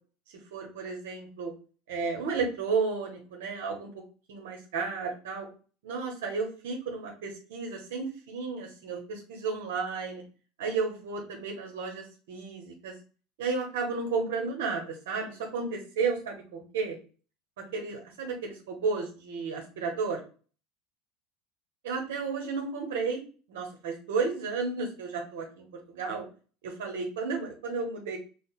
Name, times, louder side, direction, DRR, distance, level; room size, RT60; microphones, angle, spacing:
voice 1, 0.5-1.5 1.9-3.9 4.3-5.5 5.8-10.2 10.6-12.9 13.4-17.0 17.7-20.2 21.8-23.2 23.5-26.2 26.6-28.2, right 4 dB, 85° right, 1 dB, 1.0 m, -33 dB
6.1 x 2.1 x 2.3 m, 0.39 s
supercardioid pair, 105°, 0 cm